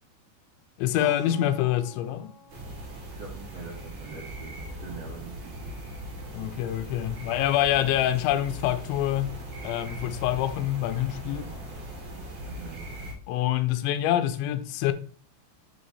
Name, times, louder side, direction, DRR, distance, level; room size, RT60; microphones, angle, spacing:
voice 1, 0.8-2.3 6.3-9.3 9.6-11.5 13.3-14.9, left 12 dB, 85° left, 3.0 m, -26 dB
Keyboard (musical), 1.0-5.5, left 3 dB, 55° left, 1.0 m, -50 dB
sound 1, 2.5-13.1, right 1 dB, 75° right, 1.0 m, -39 dB
voice 2, 3.0-4.5 4.8-5.8 12.4-12.8, right 4 dB, 50° right, 2.1 m, -44 dB
6.5 x 5.0 x 4.0 m
omnidirectional pair, 5.2 m